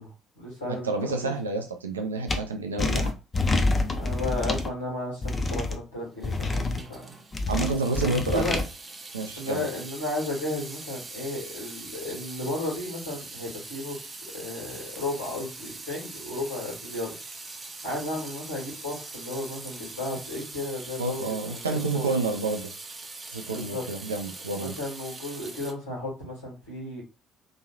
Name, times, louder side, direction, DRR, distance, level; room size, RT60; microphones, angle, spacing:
voice 1, 0.0-1.3 3.8-7.1 8.0-8.1 8.3-8.6 9.4-14.1 14.3-17.2 17.8-22.1 23.5-23.8 24.5-27.0, left 2 dB, 80° left, -5 dB, 1.6 m, -34 dB
voice 2, 0.8-3.1 7.5-8.6 9.1-9.6 21.0-22.7 23.3-24.7, right 3 dB, 80° right, 4 dB, 0.4 m, -29 dB
sound 1, 2.3-2.4 2.8-4.7 5.2-5.8 6.2-6.8 7.3-8.6, left 2 dB, 30° left, 0.5 m, -26 dB
Water tap faucet / Sink (filling or washing) / Drip, 6.1-25.7, right 3 dB, 25° right, 0.7 m, -42 dB
3.0 x 2.7 x 2.5 m, 0.31 s
figure-of-eight pair, 50°, 0 cm